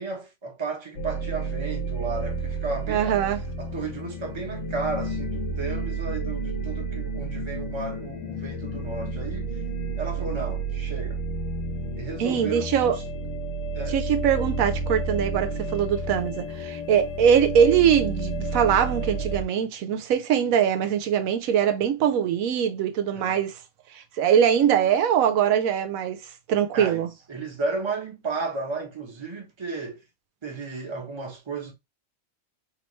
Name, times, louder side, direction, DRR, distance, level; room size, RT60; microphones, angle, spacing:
voice 1, 0.0-3.2 3.6-9.6 10.0-11.2 11.9-13.0 13.7-14.0 23.1-23.4 26.7-30.0 30.4-31.7, right 3 dB, 25° right, 0.9 m, -33 dB
sound 1, 1.0-19.4, right 2 dB, 70° left, 1.1 m, -31 dB
voice 2, 2.9-3.4 12.2-13.0 13.9-23.5 24.0-26.2 26.5-27.1, right 8 dB, 85° right, 1.0 m, -22 dB
3.1 x 2.9 x 3.0 m
omnidirectional pair, 1.4 m